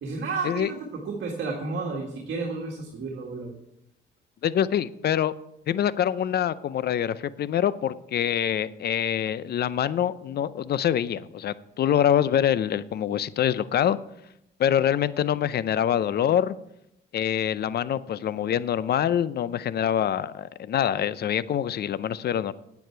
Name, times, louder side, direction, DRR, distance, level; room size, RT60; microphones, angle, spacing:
voice 1, 0.0-3.5, right 3 dB, 65° right, -1 dB, 1.9 m, -32 dB
voice 2, 4.4-5.3 5.7-14.0 14.6-16.5 17.1-22.5, left 10 dB, 55° left, 17 dB, 0.5 m, -25 dB
9.4 x 9.4 x 4.5 m, 0.81 s
cardioid pair, 90°, 20 cm